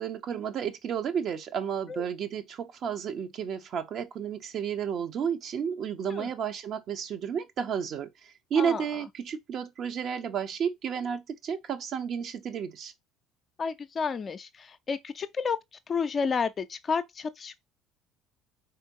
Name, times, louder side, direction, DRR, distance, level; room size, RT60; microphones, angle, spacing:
voice 1, 0.0-12.9, right 7 dB, 45° right, 1.1 m, -32 dB
voice 2, 13.6-15.6 15.9-17.6, left 5 dB, 35° left, 0.6 m, -31 dB
4.5 x 4.3 x 5.4 m
figure-of-eight pair, 55°, 0 cm